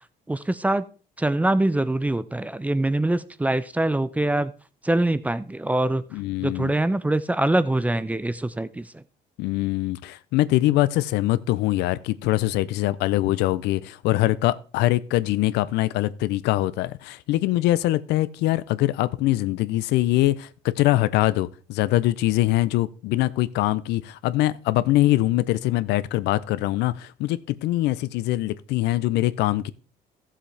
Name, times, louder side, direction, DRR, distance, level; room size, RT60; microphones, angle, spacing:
voice 1, 0.3-0.9 1.2-4.5 4.8-6.0 6.4-9.0, right 1 dB, 10° right, 0.5 m, -24 dB
voice 2, 6.1-6.7 9.4-29.7, left 16 dB, 85° left, 0.5 m, -23 dB
14.0 x 7.4 x 3.3 m
cardioid pair, 110°, 17 cm